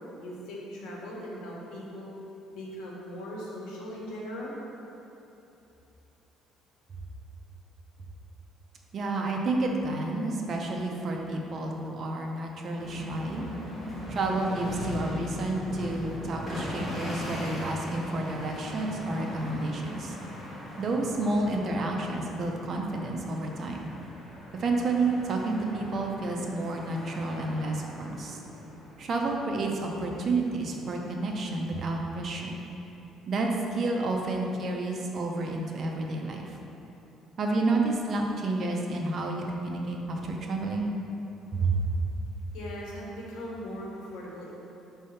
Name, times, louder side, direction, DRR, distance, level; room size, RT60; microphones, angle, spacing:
voice 1, 0.2-2.2 2.5-4.6 42.5-44.5, equal, 85° left, -3 dB, 1.3 m, -39 dB
voice 2, 8.9-13.4 14.1-20.1 20.8-23.9 24.6-28.4 29.0-32.6 33.3-36.6 37.4-40.9 41.5-41.7, right 2 dB, 40° right, 1 dB, 0.7 m, -30 dB
sound 1, 12.8-31.4, equal, 15° left, 1.4 m, -39 dB
5.4 x 3.4 x 5.7 m, 3.0 s
cardioid pair, 140°, 0 cm